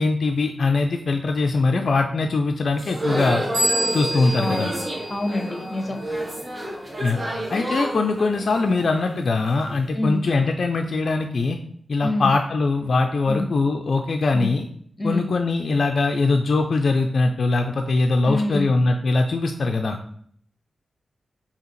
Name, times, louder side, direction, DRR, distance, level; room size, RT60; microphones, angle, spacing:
voice 1, 0.0-3.4 3.9-4.7 7.0-7.2 7.5-11.6 11.9-14.7 15.0-20.0, left 3 dB, 70° left, 4 dB, 0.3 m, -22 dB
sound 1, 2.7-9.7, right 1 dB, 40° right, 1.1 m, -30 dB
sound 2, 3.5-6.0, equal, 70° right, 1.1 m, -28 dB
voice 2, 4.3-4.8 5.1-6.0 9.9-10.2 12.0-12.3 13.3-13.5 14.3-14.5 15.0-15.3 18.2-18.7, left 1 dB, 30° left, 4 dB, 0.9 m, -26 dB
4.7 x 2.8 x 3.1 m, 0.62 s
cardioid pair, 50°, 0 cm